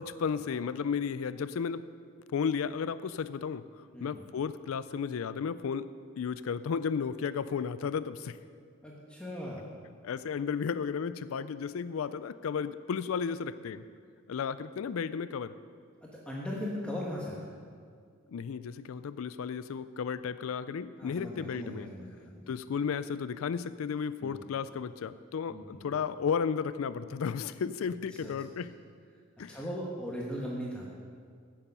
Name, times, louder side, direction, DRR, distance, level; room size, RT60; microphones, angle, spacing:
voice 1, 0.0-1.9 2.3-8.4 10.0-13.8 14.3-15.6 18.3-21.9 22.5-28.7 29.4-29.6, left 6 dB, 85° left, 14 dB, 0.4 m, -33 dB
voice 2, 3.9-4.2 8.8-9.7 16.0-17.6 21.0-22.5 24.2-24.3 25.5-25.8 28.2-28.3 29.5-30.9, equal, 5° left, -4 dB, 1.3 m, -38 dB
16.0 x 7.1 x 5.5 m, 2.1 s
head